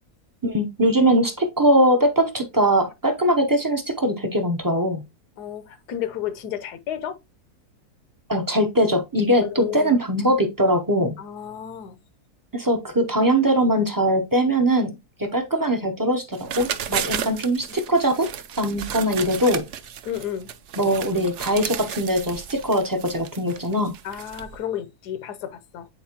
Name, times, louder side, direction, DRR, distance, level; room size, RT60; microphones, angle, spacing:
voice 1, 0.4-5.0 8.3-11.2 12.5-14.9 15.2-18.3 18.6-19.6 20.8-23.9, right 1 dB, 35° right, 0.3 m, -21 dB
voice 2, 5.4-7.2 9.4-9.9 11.2-12.0 17.1-17.4 20.0-20.5 24.0-25.9, left 10 dB, 85° left, 1.4 m, -32 dB
sound 1, 16.3-24.6, right 9 dB, 60° right, 0.8 m, -33 dB
9.0 x 4.4 x 2.9 m
omnidirectional pair, 1.7 m